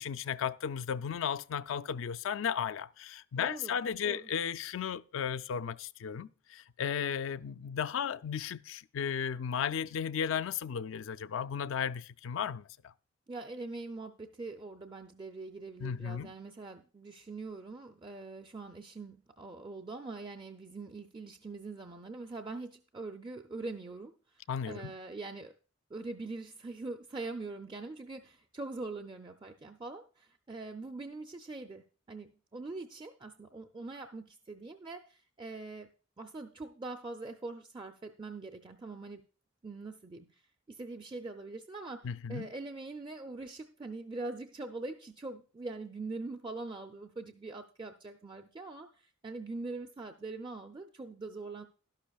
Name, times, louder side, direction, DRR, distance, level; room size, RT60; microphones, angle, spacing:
voice 1, 0.0-12.6 15.8-16.3 24.5-24.9 42.0-42.5, left 7 dB, 70° left, 0.4 m, -35 dB
voice 2, 3.4-4.3 13.3-25.5 25.9-35.9 36.2-39.2 39.6-40.4 40.7-51.7, right 3 dB, 25° right, 0.4 m, -43 dB
12.0 x 11.5 x 2.3 m
head